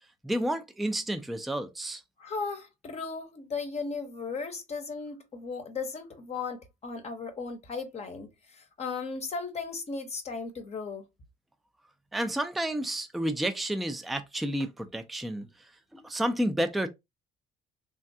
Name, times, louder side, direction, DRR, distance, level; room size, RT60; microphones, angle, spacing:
voice 1, 0.2-2.0 12.1-15.5 15.9-16.9, right 1 dB, ahead, 0.4 m, -30 dB
voice 2, 2.2-11.1, left 4 dB, 40° left, 0.7 m, -36 dB
3.4 x 2.2 x 2.6 m
cardioid pair, 110°, 17 cm